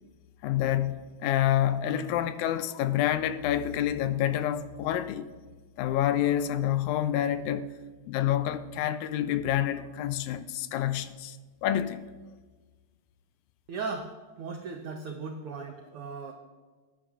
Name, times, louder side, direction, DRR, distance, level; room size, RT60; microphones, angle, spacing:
voice 1, 0.4-5.3 5.8-7.7 8.1-11.4 11.6-12.1, left 11 dB, 80° left, 1.9 m, -28 dB
voice 2, 13.7-14.1 14.4-16.3, right 4 dB, 80° right, 1.2 m, -37 dB
19.0 x 10.0 x 2.4 m
omnidirectional pair, 3.4 m